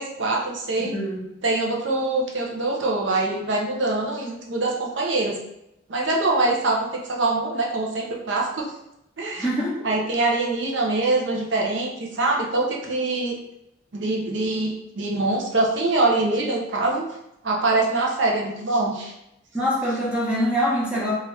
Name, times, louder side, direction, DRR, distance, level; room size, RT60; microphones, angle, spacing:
voice 1, 0.0-0.9 1.4-5.4 5.9-8.6 9.2-9.5 9.8-13.4 13.9-17.0 17.4-19.1, right 2 dB, 70° right, -2 dB, 0.6 m, -24 dB
voice 2, 0.8-1.3 9.4-9.9 19.5-21.1, equal, 5° right, -6 dB, 0.8 m, -24 dB
2.7 x 2.4 x 3.2 m, 0.83 s
head